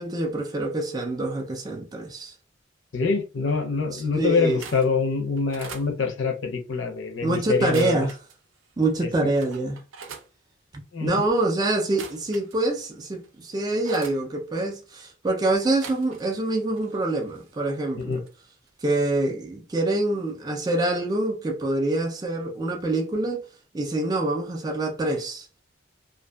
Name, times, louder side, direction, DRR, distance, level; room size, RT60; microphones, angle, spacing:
voice 1, 0.0-2.3 3.9-4.6 7.2-8.2 8.8-9.8 11.0-18.2 18.8-23.5 23.7-25.5, right 2 dB, 20° right, 0.3 m, -26 dB
voice 2, 2.9-8.1 9.0-9.3 10.9-11.4 18.0-18.2, left 4 dB, 65° left, 0.5 m, -25 dB
sound 1, 4.4-4.9 5.4-5.9 7.5-8.4 8.9-9.0 9.3-10.3 11.8-12.8 13.2-14.2 15.6-16.5 16.7-18.3 18.7-18.9 19.2-19.3, right 5 dB, 80° right, 0.5 m, -43 dB
2.5 x 2.4 x 2.2 m
head